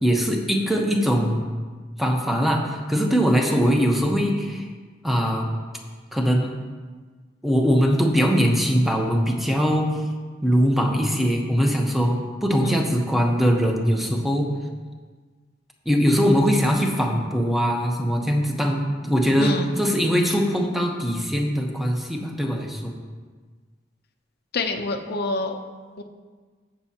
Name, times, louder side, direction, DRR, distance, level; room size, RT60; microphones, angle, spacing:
voice 1, 0.0-1.5 2.0-4.7 5.0-5.5 6.1-6.5 7.4-10.0 10.4-14.5 15.8-23.0, equal, ahead, 1 dB, 1.0 m, -21 dB
voice 2, 19.4-19.7 24.5-25.6 26.0-26.1, left 3 dB, 55° left, 5 dB, 0.7 m, -27 dB
15.5 x 6.3 x 2.9 m, 1.4 s
head